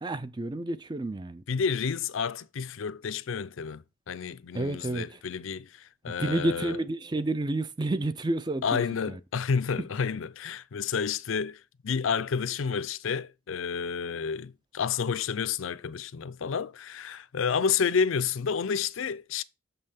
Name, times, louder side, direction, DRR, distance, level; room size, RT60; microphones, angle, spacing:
voice 1, 0.0-1.4 4.5-5.1 6.1-8.8 9.1-9.2, right 2 dB, 20° right, 0.4 m, -30 dB
voice 2, 1.5-6.8 8.6-19.4, left 6 dB, 70° left, 0.5 m, -30 dB
7.0 x 5.5 x 5.7 m
head